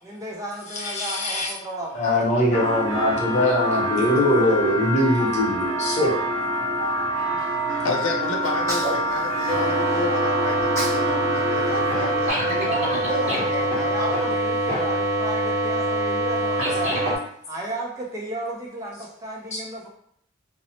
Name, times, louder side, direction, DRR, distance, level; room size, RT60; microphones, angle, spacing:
voice 1, 0.0-2.0 7.2-7.4 12.5-17.0 17.5-19.9, right 1 dB, 15° right, -3 dB, 0.4 m, -33 dB
voice 2, 0.7-1.5 1.9-6.1 19.5-19.6, left 1 dB, 35° left, -4 dB, 0.7 m, -22 dB
sound 1, 2.5-12.3, equal, 85° right, 0.6 m, -26 dB
voice 3, 7.8-14.4, left 3 dB, 85° left, 3 dB, 0.5 m, -31 dB
Sneeze, 8.4-10.0 10.5-11.1 11.4-12.8, right 1 dB, 15° left, 1.2 m, -33 dB
sound 2, 9.5-17.2, right 1 dB, 35° right, 0.9 m, -24 dB
2.8 x 2.0 x 2.7 m, 0.67 s
head